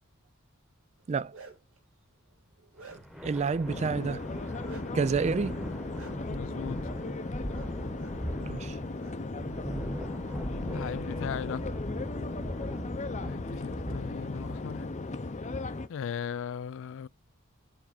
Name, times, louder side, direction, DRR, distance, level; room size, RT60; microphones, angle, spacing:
Bark, 1.0-1.8 2.3-3.3 4.6-4.9 5.9-6.1 7.5-7.7 7.9-8.1 9.0-9.1 9.5-10.4, right 4 dB, 75° right, 2.2 m, -50 dB
sound 1, 2.9-15.1, equal, 5° right, 1.1 m, -40 dB
voice 1, 3.2-4.3 4.9-5.7 8.4-8.8, right 5 dB, 30° right, 0.3 m, -29 dB
sound 2, 3.7-15.9, left 2 dB, 35° left, 0.7 m, -37 dB
voice 2, 6.3-6.9 10.5-11.7 13.2-14.9 15.9-17.1, left 7 dB, 65° left, 0.3 m, -38 dB
7.3 x 3.5 x 5.1 m
head